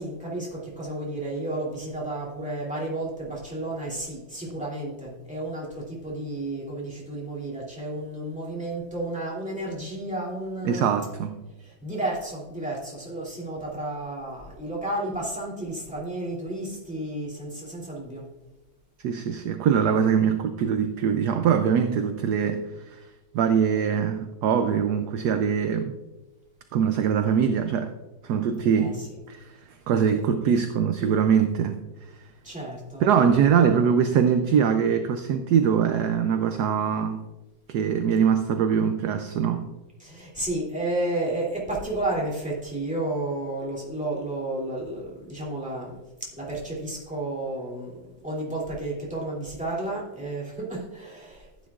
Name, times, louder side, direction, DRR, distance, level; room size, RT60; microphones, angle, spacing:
voice 1, 0.0-10.9 11.6-18.2 28.7-29.1 32.4-33.1 33.5-33.7 40.0-45.9 46.4-48.0 48.2-51.5, right 1 dB, 5° right, -5 dB, 2.7 m, -32 dB
voice 2, 10.6-11.4 19.0-23.0 23.3-25.9 26.7-27.9 28.2-29.0 29.3-29.5 29.9-31.8 33.0-37.2 37.7-39.7, right 7 dB, 70° right, 7 dB, 1.0 m, -23 dB
15.0 x 9.3 x 2.4 m, 1.1 s
omnidirectional pair, 2.1 m